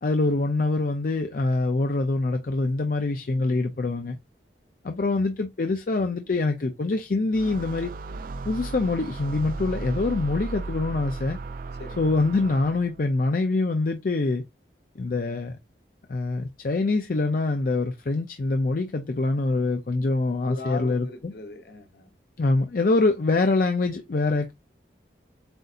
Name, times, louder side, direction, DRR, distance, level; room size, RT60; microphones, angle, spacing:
voice 1, 0.0-4.2 4.8-7.9 8.5-11.4 12.0-14.4 15.0-15.6 16.1-21.3 22.4-24.5, left 3 dB, 50° left, 0.5 m, -25 dB
sound 1, 7.3-13.0, right 3 dB, 50° right, 0.3 m, -35 dB
voice 2, 20.5-22.1, left 3 dB, 65° left, 1.0 m, -38 dB
7.8 x 2.7 x 2.5 m
head